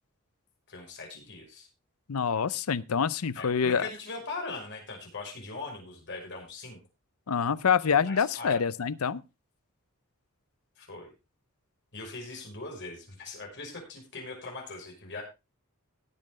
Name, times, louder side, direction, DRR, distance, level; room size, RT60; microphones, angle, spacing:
voice 1, 0.7-1.7 3.4-6.8 8.1-8.6 10.8-11.1 11.9-15.2, left 3 dB, 55° left, 1 dB, 5.8 m, -40 dB
voice 2, 2.1-3.9 7.3-9.2, left 6 dB, 80° left, 18 dB, 0.6 m, -26 dB
18.0 x 7.7 x 3.7 m, 0.27 s
head